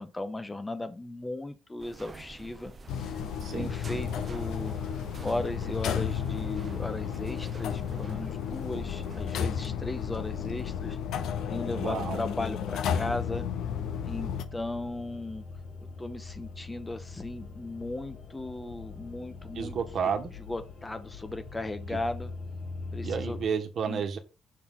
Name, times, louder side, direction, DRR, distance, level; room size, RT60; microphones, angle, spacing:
voice 1, 0.0-2.7 3.0-3.2 3.5-11.0 11.5-13.4 14.1-15.4 15.8-19.8 20.5-22.3 22.9-23.4 23.9-24.0, left 2 dB, 20° left, 1.0 m, -36 dB
sound 1, 1.8-9.7, right 3 dB, 35° right, 0.8 m, -47 dB
sound 2, 2.9-14.5, left 8 dB, 80° left, 0.7 m, -33 dB
voice 2, 3.4-3.7 11.8-12.2 19.5-20.3 21.9-22.0 23.0-24.2, right 6 dB, 60° right, 1.4 m, -31 dB
sound 3, 4.4-23.4, left 4 dB, 55° left, 2.2 m, -44 dB
6.2 x 6.0 x 3.7 m
cardioid pair, 90°, 0 cm